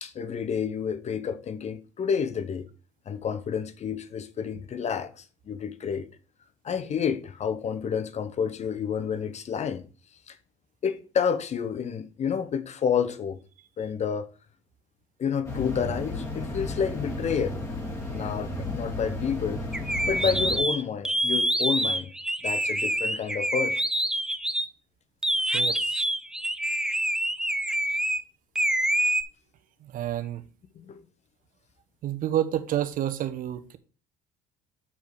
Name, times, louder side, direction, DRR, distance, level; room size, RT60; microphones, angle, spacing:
voice 1, 0.0-2.7 3.1-6.1 6.6-9.8 10.3-10.4 10.8-13.4 13.8-14.3 15.2-17.6 18.1-19.6 20.0-22.1 22.4-23.8 30.7-31.0, left 7 dB, 45° left, 1.0 m, -29 dB
sound 1, 15.4-20.6, left 2 dB, 20° left, 3.2 m, -33 dB
sound 2, 19.7-24.7 25.2-28.2 28.6-29.2, right 1 dB, 5° right, 0.7 m, -26 dB
voice 2, 25.5-26.1 29.8-30.4 32.0-33.8, right 11 dB, 60° right, 1.0 m, -29 dB
7.3 x 4.8 x 5.2 m
supercardioid pair, 80°, 16 cm